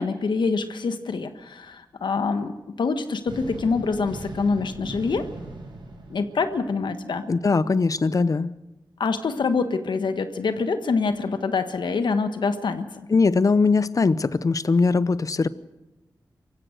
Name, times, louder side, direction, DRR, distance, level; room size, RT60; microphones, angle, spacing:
voice 1, 0.0-2.5 2.8-5.2 6.1-7.2 9.0-13.1, left 4 dB, 85° left, 9 dB, 1.3 m, -25 dB
sound 1, 3.3-7.2, right 2 dB, 85° right, 6.8 m, -39 dB
voice 2, 7.3-8.6 13.1-15.5, left 4 dB, 50° left, 17 dB, 0.7 m, -21 dB
26.0 x 15.5 x 6.6 m, 1.0 s
wide cardioid pair, 80°, 8 cm